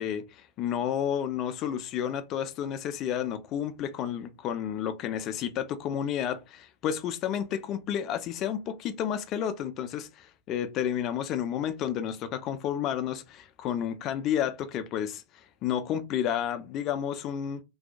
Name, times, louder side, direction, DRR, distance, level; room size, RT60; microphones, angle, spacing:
voice 1, 0.0-17.6, left 9 dB, 35° left, 0.3 m, -31 dB
2.6 x 2.1 x 2.4 m
figure-of-eight pair, 90°, 0 cm